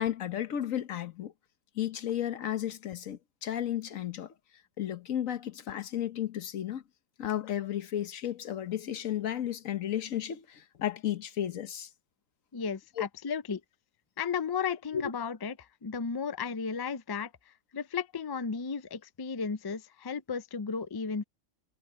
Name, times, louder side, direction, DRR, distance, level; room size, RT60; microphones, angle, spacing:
voice 1, 0.0-1.3 1.8-4.3 4.8-6.8 7.2-11.9 13.0-13.1 14.9-15.0, left 11 dB, 80° left, 1.4 m, -33 dB
voice 2, 12.5-13.6 14.2-21.2, left 6 dB, 35° left, 0.3 m, -34 dB
omnidirectional pair, 1.4 m